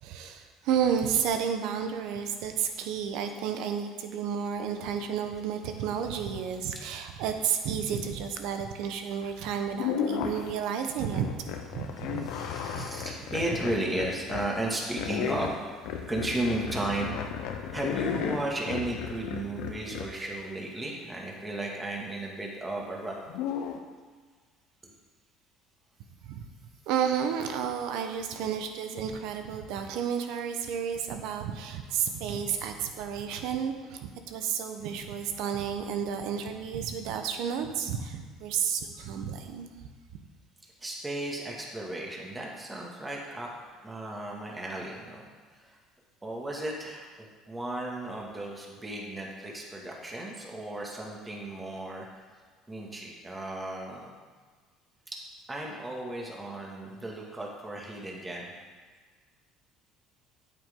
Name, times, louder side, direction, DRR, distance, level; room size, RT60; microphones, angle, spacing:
voice 1, 0.0-12.3 12.7-12.9 26.2-26.4 26.9-39.7 40.1-40.2, right 7 dB, 70° right, 6 dB, 0.9 m, -31 dB
voice 2, 7.6-8.2 10.4-10.8 11.9-15.8 16.1-17.1 17.7-23.2 24.8-24.9 40.8-43.5 43.8-45.2 45.5-45.8 46.2-52.1 52.7-54.1 55.1-55.2 55.5-58.5, right 1 dB, 15° right, -2 dB, 2.1 m, -35 dB
sound 1, 9.2-9.4 9.7-10.6 11.1-14.5 15.0-20.2 23.3-23.8, left 7 dB, 75° left, 0.9 m, -34 dB
8.9 x 8.3 x 3.8 m, 1.5 s
supercardioid pair, 80°, 0 cm